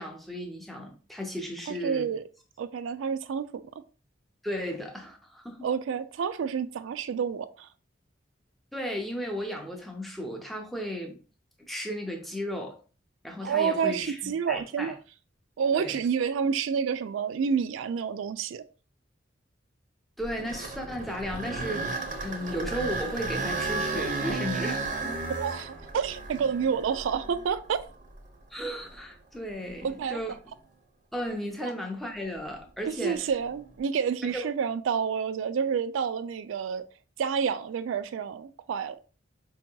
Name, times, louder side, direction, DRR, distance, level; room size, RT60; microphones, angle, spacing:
voice 1, 0.0-2.1 4.4-5.7 8.7-11.2 11.7-12.8 13.2-14.9 15.7-16.0 20.2-25.2 28.5-30.3 31.1-33.3 34.3-34.5, equal, ahead, 0.6 m, -35 dB
voice 2, 1.7-2.2 2.6-3.8 5.6-7.7 13.4-15.0 15.6-18.6 25.3-27.8 29.8-30.4 31.6-31.7 32.9-36.9 37.2-39.0, right 6 dB, 85° right, 0.3 m, -29 dB
sound 1, 20.2-28.3 28.9-29.0 29.7-29.8 33.3-33.7, right 3 dB, 40° right, 0.6 m, -34 dB
4.5 x 2.8 x 2.2 m
head